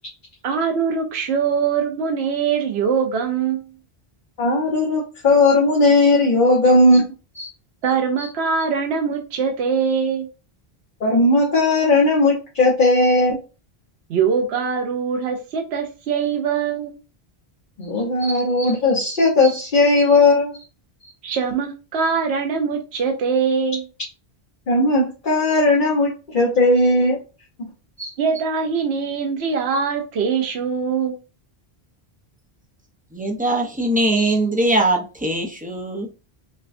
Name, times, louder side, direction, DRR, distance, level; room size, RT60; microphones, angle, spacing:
voice 1, 0.4-3.7 7.8-10.3 14.1-17.0 21.2-23.8 28.2-31.2, right 6 dB, 85° right, 4 dB, 0.9 m, -22 dB
voice 2, 4.4-7.0 7.3-7.5 11.0-13.4 17.8-20.6 24.7-27.2 28.0-28.1, left 2 dB, 50° left, -3 dB, 1.1 m, -17 dB
voice 3, 33.1-36.1, right 1 dB, 10° right, 1 dB, 0.6 m, -21 dB
5.6 x 2.2 x 2.6 m, 0.32 s
omnidirectional pair, 1.1 m